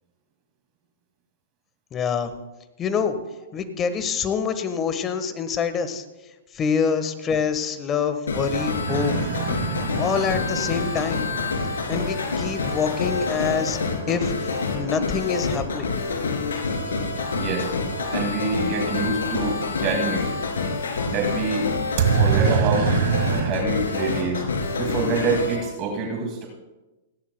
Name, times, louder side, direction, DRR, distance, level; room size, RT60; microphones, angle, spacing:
voice 1, 1.9-2.3 2.8-3.2 3.5-6.0 6.5-9.1 10.0-11.2 11.9-13.8 14.1-15.9, left 6 dB, 25° left, 10 dB, 1.3 m, -26 dB
sound 1, 8.3-25.6, left 4 dB, 85° left, 3.0 m, -27 dB
sound 2, 8.9-14.6 22.0-23.5, right 7 dB, 60° right, 1.9 m, -26 dB
voice 2, 17.3-17.7 18.1-20.3 21.1-21.7 22.1-22.9 23.4-24.4 24.8-26.5, right 3 dB, 40° right, 1 dB, 2.2 m, -26 dB
29.5 x 11.5 x 2.2 m, 1.1 s
hypercardioid pair, 125°, 0 cm